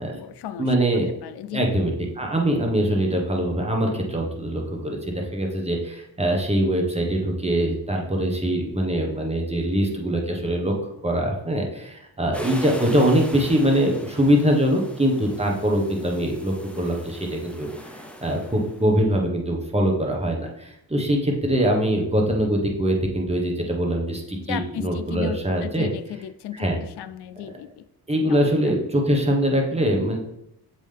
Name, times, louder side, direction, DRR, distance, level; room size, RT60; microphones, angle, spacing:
voice 1, 0.0-0.7 1.2-1.8 24.4-27.8 28.3-28.7, left 10 dB, 80° left, 13 dB, 0.5 m, -35 dB
voice 2, 0.6-1.1 1.5-10.7 11.0-17.7 18.2-25.9 26.5-26.8 28.1-30.2, right 1 dB, 15° right, 0 dB, 1.3 m, -23 dB
sound 1, 12.3-18.9, equal, 5° left, 0.7 m, -41 dB
7.3 x 3.7 x 3.4 m, 0.81 s
cardioid pair, 70°, 39 cm